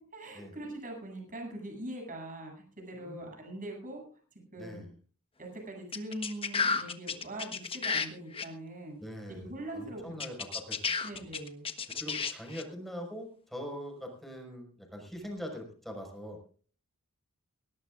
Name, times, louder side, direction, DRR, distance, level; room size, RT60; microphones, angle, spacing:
voice 1, 0.1-4.8 5.4-9.0 9.3-10.1 11.0-11.7, right 1 dB, 40° right, 1 dB, 7.9 m, -42 dB
voice 2, 2.9-3.3 4.6-4.9 9.0-11.0 12.0-16.4, equal, ahead, 1 dB, 5.5 m, -42 dB
sound 1, 5.9-8.1 8.3-8.4 10.2-12.6, left 5 dB, 25° left, 1.3 m, -32 dB
20.0 x 18.0 x 2.6 m, 0.41 s
head